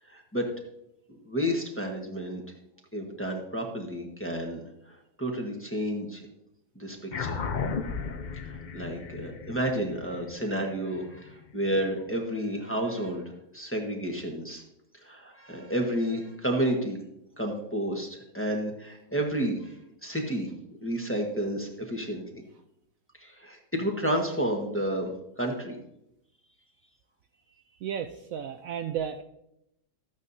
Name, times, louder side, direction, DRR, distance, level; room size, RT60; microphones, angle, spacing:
voice 1, 0.1-0.5 1.2-2.4 2.9-4.7 5.2-6.2 6.7-7.4 8.4-14.6 15.0-17.0 17.4-19.7 20.0-20.5 20.8-22.2 23.2-25.1 25.4-25.8, equal, 10° left, 0 dB, 1.1 m, -31 dB
sound 1, 7.1-11.9, left 5 dB, 75° left, 0.4 m, -35 dB
voice 2, 27.8-29.2, right 8 dB, 70° right, 6 dB, 0.8 m, -33 dB
13.5 x 8.7 x 2.7 m, 0.83 s
omnidirectional pair, 1.8 m